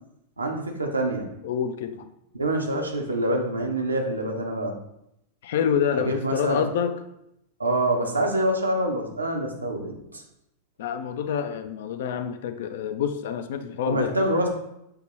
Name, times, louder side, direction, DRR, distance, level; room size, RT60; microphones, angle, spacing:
voice 1, 0.4-1.3 2.4-4.7 5.9-6.6 7.6-10.2 13.8-14.5, right 1 dB, 80° right, 2 dB, 0.7 m, -26 dB
voice 2, 1.4-2.1 5.4-7.0 10.8-14.1, left 8 dB, 55° left, 9 dB, 0.4 m, -27 dB
5.7 x 2.9 x 3.1 m, 0.82 s
figure-of-eight pair, 90°, 0 cm